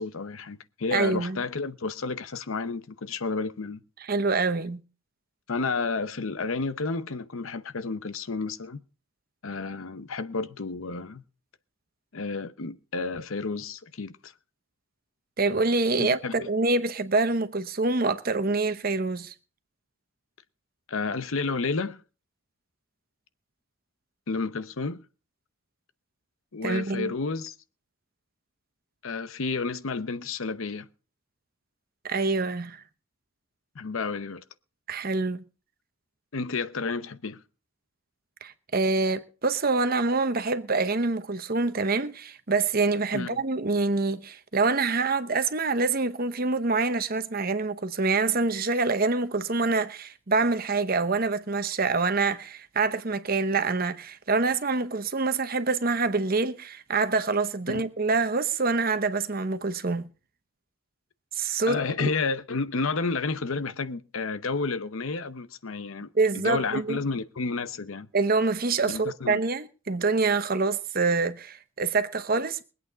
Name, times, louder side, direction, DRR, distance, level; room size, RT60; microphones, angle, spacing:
voice 1, 0.0-3.8 5.5-8.8 9.4-11.2 12.1-14.3 16.0-16.5 20.9-22.0 24.3-25.0 26.5-27.5 29.0-30.9 33.7-34.4 36.3-37.4 43.1-43.4 57.7-57.9 61.7-66.1 66.3-68.1 68.9-69.4, left 4 dB, 75° left, 0.8 m, -31 dB
voice 2, 0.9-1.4 4.1-4.8 15.4-19.3 26.6-27.1 32.0-32.8 34.9-35.4 38.4-60.0 61.3-62.1 66.1-67.0 68.1-72.6, right 3 dB, 45° right, 0.9 m, -26 dB
22.5 x 8.6 x 4.0 m
head